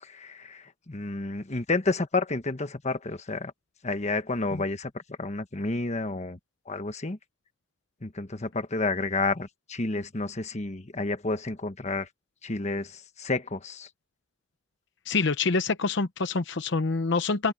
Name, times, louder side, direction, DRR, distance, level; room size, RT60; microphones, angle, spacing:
voice 1, 0.0-3.5 3.8-6.4 6.7-7.2 8.0-12.1 12.4-13.9, left 3 dB, 35° left, 1.3 m, -30 dB
voice 2, 15.1-17.5, left 4 dB, 65° left, 0.9 m, -26 dB
open air
head